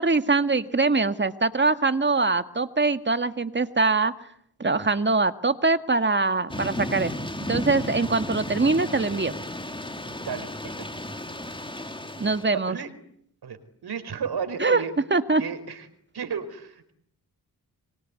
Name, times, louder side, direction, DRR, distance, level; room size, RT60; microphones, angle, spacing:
voice 1, 0.0-4.1 4.6-7.1 7.5-9.4 12.2-12.8 14.6-14.8 15.1-15.4, right 3 dB, 30° right, 10 dB, 2.0 m, -23 dB
Thunder / Rain, 6.5-12.4, left 1 dB, 15° left, 3.7 m, -34 dB
voice 2, 10.2-11.0 12.5-12.9 13.4-13.6 13.8-14.9 15.4-15.9 16.1-16.9, right 6 dB, 80° right, 11 dB, 4.6 m, -33 dB
25.5 x 24.0 x 9.7 m, 0.69 s
cardioid pair, 80°, 38 cm